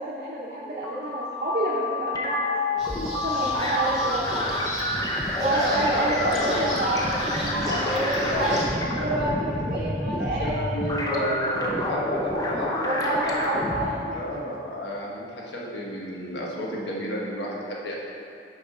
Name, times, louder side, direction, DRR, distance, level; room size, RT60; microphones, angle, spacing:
voice 1, 0.0-4.5 5.4-11.4 12.8-14.4, right 1 dB, 40° right, -6 dB, 0.7 m, -29 dB
sound 1, 0.6-13.9, left 1 dB, 20° left, 0.6 m, -28 dB
sound 2, 2.8-8.6, equal, ahead, 1.7 m, -36 dB
voice 2, 5.5-6.6 7.5-7.9 8.2-8.7 9.6-12.9 13.2-13.7 14.1-18.0, equal, 75° left, -3 dB, 1.3 m, -32 dB
6.8 x 4.6 x 5.4 m, 2.5 s
head